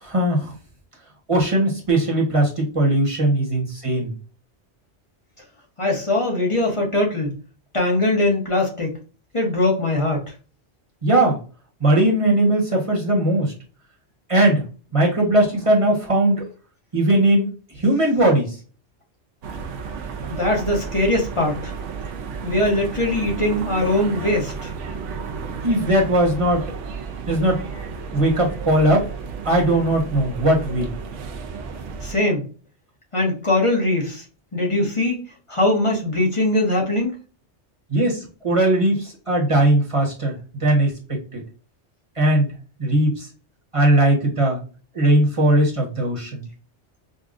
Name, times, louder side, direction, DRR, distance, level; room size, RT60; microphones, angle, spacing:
voice 1, 0.0-0.5 1.3-4.1 11.0-11.4 11.8-13.5 14.3-14.6 14.9-16.4 16.9-17.5 17.7-18.5 25.6-26.6 27.3-27.6 28.1-29.1 29.4-30.9 37.9-41.4 42.2-42.5 42.8-43.3 43.7-44.6 44.9-46.4, right 1 dB, 30° right, -2 dB, 1.2 m, -19 dB
voice 2, 5.8-7.4 7.7-9.0 9.3-10.3 20.3-21.7 22.4-24.7 32.0-32.5 33.1-34.2 34.5-35.2 35.5-37.1, left 1 dB, 30° left, -1 dB, 1.0 m, -21 dB
sound 1, 19.4-32.1, right 5 dB, 85° right, 0.9 m, -32 dB
5.4 x 2.3 x 2.5 m, 0.36 s
omnidirectional pair, 1.2 m